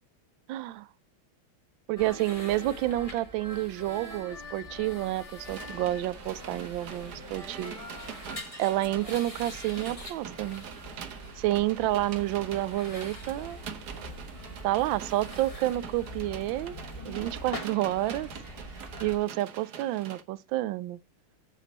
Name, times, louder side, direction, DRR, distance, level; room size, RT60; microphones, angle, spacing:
voice 1, 0.5-0.9 1.9-7.7 8.6-10.6 11.4-13.6 14.6-16.8 17.0-18.3 19.0-21.0, right 15 dB, 75° right, 1.2 m, -29 dB
sound 1, 2.0-19.2, left 1 dB, 20° left, 1.3 m, -43 dB
sound 2, 5.4-20.2, right 8 dB, 55° right, 1.3 m, -44 dB
8.5 x 7.1 x 4.1 m
omnidirectional pair, 2.4 m